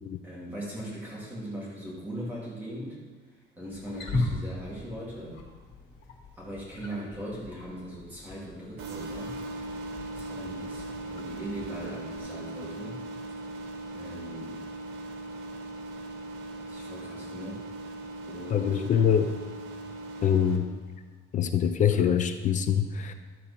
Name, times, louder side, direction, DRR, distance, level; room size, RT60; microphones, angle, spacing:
voice 1, 0.2-3.0 3.3-5.4 6.3-9.4 10.1-13.1 13.9-14.6 16.6-17.6 18.3-18.8, equal, 10° right, -7 dB, 2.7 m, -39 dB
Wild animals, 3.7-12.2, left 2 dB, 60° left, 1.9 m, -38 dB
sound 1, 8.8-20.6, right 2 dB, 85° right, 1.6 m, -39 dB
voice 2, 18.5-19.3 20.2-20.7 21.3-23.1, left 8 dB, 40° left, 9 dB, 0.6 m, -24 dB
12.0 x 7.6 x 4.3 m, 1.3 s
cardioid pair, 160°, 19 cm